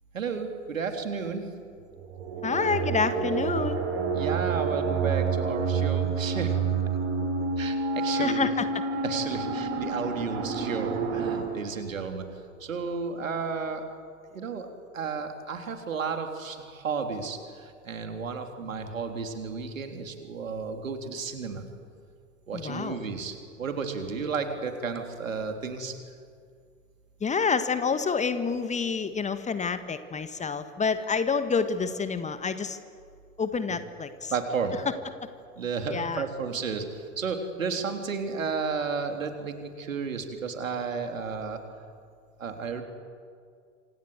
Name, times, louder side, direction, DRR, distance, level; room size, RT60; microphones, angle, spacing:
voice 1, 0.1-1.5 4.1-6.6 7.6-8.5 9.0-12.2 12.6-13.9 14.3-14.7 14.9-21.6 22.5-25.9 33.7-33.8 34.3-34.8 35.6-41.6 42.4-42.8, right 5 dB, 75° right, 5 dB, 3.5 m, -32 dB
sound 1, 2.0-11.4, right 5 dB, 55° right, 6.6 m, -28 dB
voice 2, 2.4-3.8 8.1-8.7 22.5-23.0 27.2-32.8 33.4-34.3 35.9-36.2, left 5 dB, 15° left, 11 dB, 1.5 m, -28 dB
27.0 x 26.5 x 8.1 m, 2.1 s
figure-of-eight pair, 85°, 40 cm